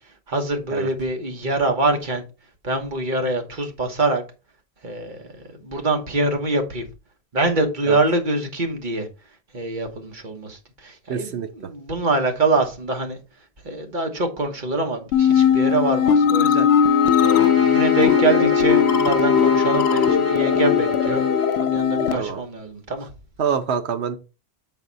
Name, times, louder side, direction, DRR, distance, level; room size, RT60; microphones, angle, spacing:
voice 1, 0.3-2.2 2.6-4.2 4.8-6.8 7.3-9.1 9.5-13.2 13.6-16.7 17.2-21.2 21.6-23.1, right 2 dB, 50° right, 1.4 m, -24 dB
voice 2, 11.1-11.5 22.1-22.4 23.4-24.2, right 7 dB, 85° right, 1.1 m, -25 dB
sound 1, 15.1-22.1, left 8 dB, 75° left, 0.8 m, -18 dB
sound 2, 16.8-21.7, left 2 dB, 10° left, 2.6 m, -26 dB
7.2 x 4.1 x 4.0 m
omnidirectional pair, 1.1 m